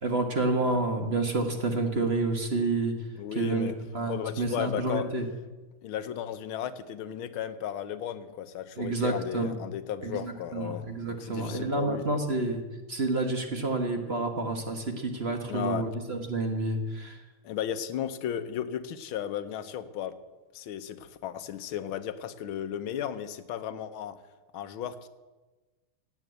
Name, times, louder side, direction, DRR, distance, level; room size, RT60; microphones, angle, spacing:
voice 1, 0.0-2.9 3.3-5.2 8.8-9.6 10.0-12.6 12.9-17.2, right 2 dB, 35° right, 4 dB, 1.4 m, -29 dB
voice 2, 3.2-3.8 4.1-5.1 5.8-12.1 15.5-15.9 17.4-20.1 20.5-24.2 24.5-25.1, left 9 dB, 75° left, 11 dB, 1.6 m, -35 dB
16.5 x 9.1 x 8.0 m, 1.2 s
omnidirectional pair, 2.4 m